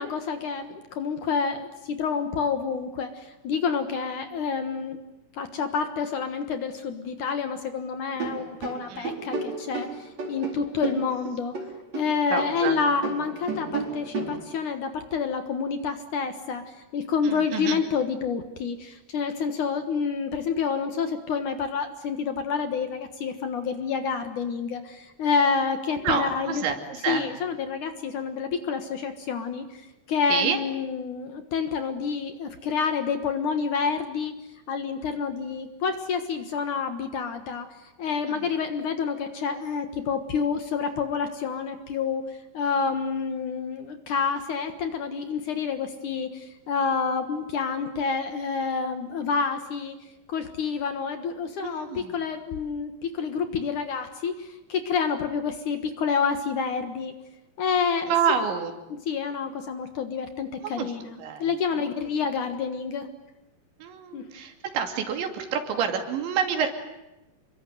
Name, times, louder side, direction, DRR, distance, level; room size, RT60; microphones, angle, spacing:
voice 1, 0.0-5.0 5.3-11.6 11.9-26.6 27.1-34.3 34.7-50.0 50.3-57.2 57.6-58.1 59.0-61.1 61.4-63.1 64.1-64.2, left 5 dB, 60° left, 8 dB, 2.4 m, -28 dB
sound 1, 8.1-12.1 12.4-14.4, right 4 dB, 40° right, 5.0 m, -32 dB
voice 2, 12.3-12.8 17.2-17.8 26.0-27.3 30.3-30.6 38.3-38.5 51.6-52.2 58.1-58.7 60.6-60.9 61.2-61.5 61.8-61.9 63.8-66.7, right 7 dB, 90° right, 5 dB, 5.0 m, -28 dB
27.5 x 23.0 x 9.3 m, 0.97 s
omnidirectional pair, 5.0 m